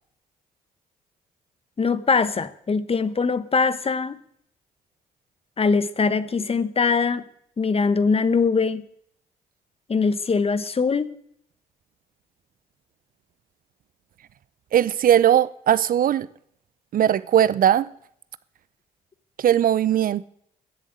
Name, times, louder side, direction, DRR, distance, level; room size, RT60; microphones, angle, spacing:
voice 1, 1.8-4.2 5.6-7.2 7.6-8.8 9.9-11.1, left 4 dB, 35° left, 1.0 m, -22 dB
voice 2, 14.7-16.3 16.9-17.9 19.4-20.3, right 10 dB, 50° right, 0.6 m, -19 dB
15.0 x 7.3 x 8.1 m
hypercardioid pair, 45°, 18 cm